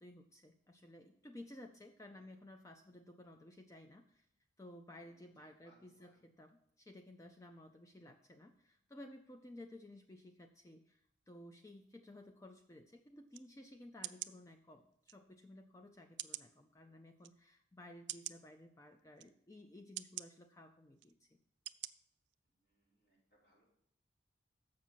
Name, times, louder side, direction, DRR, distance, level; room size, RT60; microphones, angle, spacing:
voice 1, 0.0-4.3 4.6-21.4, left 1 dB, 15° left, 5 dB, 0.3 m, -56 dB
voice 2, 5.1-6.2 22.4-23.6, equal, 55° left, -6 dB, 4.7 m, -72 dB
sound 1, 13.3-13.5 14.0-14.3 15.1-15.2 16.2-16.5 17.2-17.3 18.1-18.4 19.2-19.3 20.0-20.3 21.0-21.1 21.7-21.9 22.3-22.4, right 15 dB, 60° right, 0.3 m, -44 dB
7.4 x 6.0 x 7.2 m, 0.72 s
head